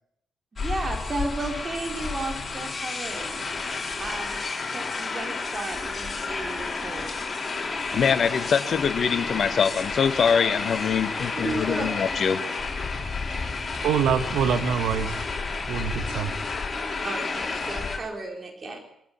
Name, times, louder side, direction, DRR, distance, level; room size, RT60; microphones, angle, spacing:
voice 1, 0.5-3.4 4.0-4.4 4.7-7.2 11.3-11.9 13.6-13.7 17.0-18.8, right 2 dB, 40° right, 2 dB, 4.3 m, -33 dB
sound 1, 0.6-18.0, left 4 dB, 35° left, 5.5 m, -31 dB
voice 2, 7.9-12.4, left 7 dB, 55° left, 12 dB, 1.5 m, -24 dB
voice 3, 13.7-15.3 15.7-16.3, right 8 dB, 70° right, 8 dB, 1.8 m, -25 dB
23.5 x 14.5 x 8.7 m, 0.75 s
hypercardioid pair, 40°, 0 cm